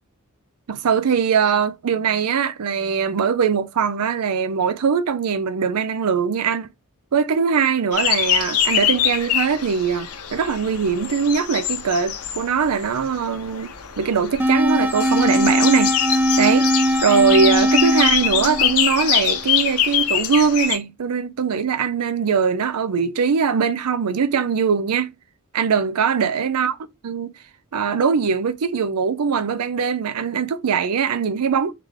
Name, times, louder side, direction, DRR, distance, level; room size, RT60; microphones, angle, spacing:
voice 1, 0.7-6.7 7.1-16.0 16.4-16.7 17.0-25.1 25.5-26.8 27.0-27.3 27.7-31.7, right 6 dB, 90° right, 0.5 m, -21 dB
sound 1, 7.9-20.8, left 10 dB, 80° left, 0.8 m, -24 dB
sound 2, 14.4-19.4, equal, 10° right, 0.3 m, -20 dB
3.3 x 3.2 x 3.6 m
head